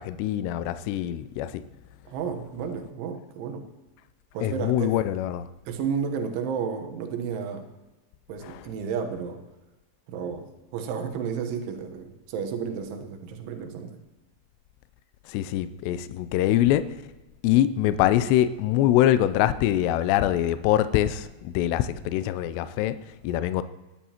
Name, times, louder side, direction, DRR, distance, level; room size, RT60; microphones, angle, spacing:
voice 1, 0.0-1.6 4.4-5.5 8.4-8.6 15.3-17.0 17.4-23.6, left 12 dB, 85° left, 2.4 m, -24 dB
voice 2, 2.1-3.7 4.3-4.9 5.7-7.7 8.3-9.4 10.1-14.0, right 6 dB, 80° right, 3.5 m, -32 dB
20.5 x 11.0 x 2.9 m
omnidirectional pair, 5.4 m